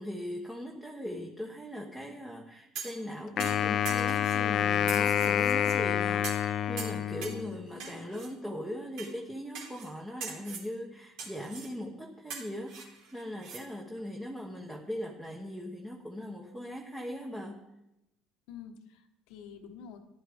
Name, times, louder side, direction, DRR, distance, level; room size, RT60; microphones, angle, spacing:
voice 1, 0.0-17.6, equal, 5° right, -1 dB, 1.2 m, -40 dB
sound 1, 2.7-3.0 3.4-4.4 4.9-5.8 6.2-6.5 6.8-7.4 7.8-8.3 9.0-9.1 9.5-9.9 10.2-10.7 11.2-11.7 12.3-13.6 14.0-14.1, right 6 dB, 70° right, 3.3 m, -42 dB
Wind instrument woodwind instrument, 3.4-7.7, left 9 dB, 45° left, 0.4 m, -28 dB
voice 2, 7.1-8.1 18.5-20.0, left 6 dB, 80° left, 5 dB, 1.4 m, -49 dB
15.0 x 11.0 x 3.6 m, 0.88 s
cardioid pair, 145°, 0 cm